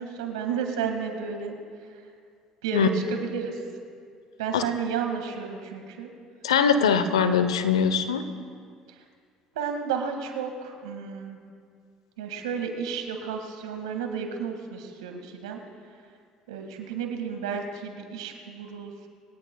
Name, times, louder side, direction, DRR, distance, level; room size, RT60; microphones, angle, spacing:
voice 1, 0.0-1.5 1.8-2.0 2.6-3.6 4.4-6.1 8.9-9.0 9.5-11.4 12.2-15.6 16.5-19.1, right 6 dB, 80° right, 4 dB, 2.0 m, -32 dB
voice 2, 6.4-8.3, left 6 dB, 90° left, 10 dB, 0.8 m, -22 dB
24.5 x 17.5 x 2.3 m, 2.2 s
hypercardioid pair, 60°, 3 cm